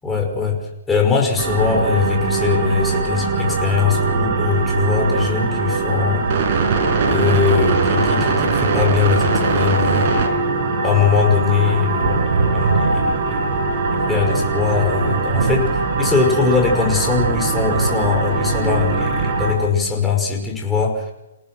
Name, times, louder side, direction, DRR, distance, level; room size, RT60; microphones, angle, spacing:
voice 1, 0.0-6.3 7.1-10.1 10.8-13.5 13.9-21.1, left 6 dB, 10° left, 0 dB, 5.4 m, -21 dB
sound 1, 1.4-19.5, right 4 dB, 40° right, 5.6 m, -21 dB
sound 2, 9.6-9.7 10.1-10.2 10.8-19.8, right 3 dB, 85° right, 3.3 m, -26 dB
29.0 x 18.0 x 6.3 m, 0.93 s
hypercardioid pair, 155°, 0 cm